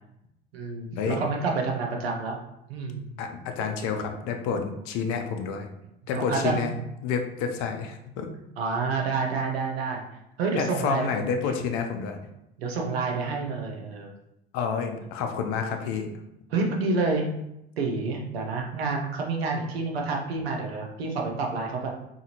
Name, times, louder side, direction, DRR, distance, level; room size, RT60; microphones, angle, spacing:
voice 1, 0.5-2.4 2.7-3.0 6.1-6.7 8.6-10.0 10.4-11.1 12.6-14.1 16.5-17.3 17.8-21.9, right 4 dB, 85° right, 1 dB, 0.6 m, -28 dB
voice 2, 3.2-5.7 6.1-6.7 7.0-8.3 10.6-12.2 14.5-16.1, left 6 dB, 60° left, 5 dB, 0.6 m, -29 dB
2.6 x 2.5 x 2.8 m, 0.85 s
hypercardioid pair, 70°, 30 cm